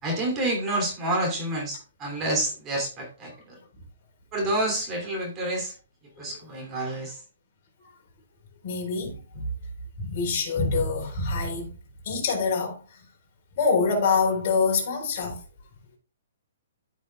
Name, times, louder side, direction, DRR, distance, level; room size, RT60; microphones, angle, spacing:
voice 1, 0.0-3.6 4.3-5.7 6.2-7.2, right 1 dB, 20° right, 2.8 m, -28 dB
voice 2, 8.6-9.5 10.0-11.7 12.1-12.8 13.6-15.4, left 4 dB, 45° left, 4.0 m, -25 dB
13.5 x 6.2 x 2.3 m
hypercardioid pair, 155°, 0 cm